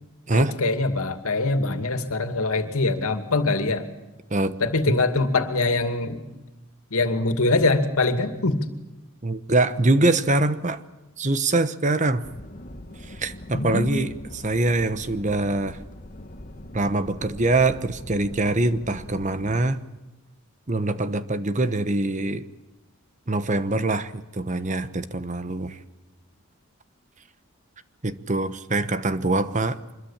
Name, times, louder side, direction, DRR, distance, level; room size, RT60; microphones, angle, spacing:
voice 1, 0.3-3.8 4.6-6.2 6.9-8.6 13.5-14.1, left 3 dB, 85° left, 8 dB, 2.5 m, -23 dB
voice 2, 9.2-10.8 11.2-12.2 13.0-15.8 16.7-19.8 20.7-22.5 23.3-25.8 28.0-29.8, right 2 dB, 35° right, 12 dB, 1.1 m, -24 dB
sound 1, 12.2-19.7, left 1 dB, 35° left, 1.4 m, -41 dB
25.0 x 22.0 x 7.4 m, 1.1 s
head